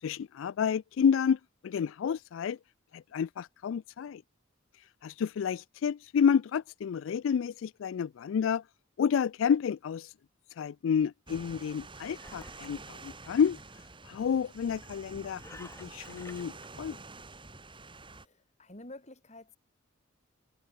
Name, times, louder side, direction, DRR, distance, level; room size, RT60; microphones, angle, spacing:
voice 1, 0.0-2.6 2.9-4.2 5.0-8.6 9.0-10.1 10.6-13.6 14.0-16.5 16.8-17.0, left 7 dB, 75° left, 0.3 m, -30 dB
sound 1, 11.3-18.3, right 3 dB, 25° right, 5.8 m, -48 dB
Engine, 12.1-13.7 15.4-16.7, left 2 dB, 15° left, 2.9 m, -52 dB
voice 2, 18.1-19.6, left 1 dB, 35° left, 4.4 m, -49 dB
head